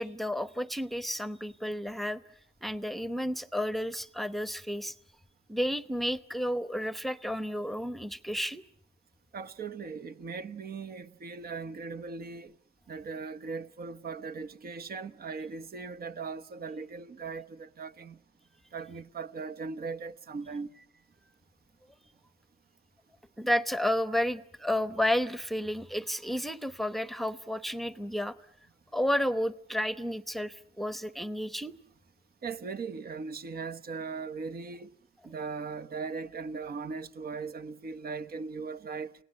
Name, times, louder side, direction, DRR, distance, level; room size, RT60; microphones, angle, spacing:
voice 1, 0.0-2.2 2.6-4.9 5.5-8.6 23.4-28.4 28.9-31.7, equal, ahead, 1.0 m, -31 dB
voice 2, 9.3-12.5 12.9-18.2 18.7-20.7 32.4-34.9 35.2-39.1, right 4 dB, 50° right, 1.1 m, -39 dB
28.5 x 17.5 x 9.6 m
cardioid pair, 90°, 20 cm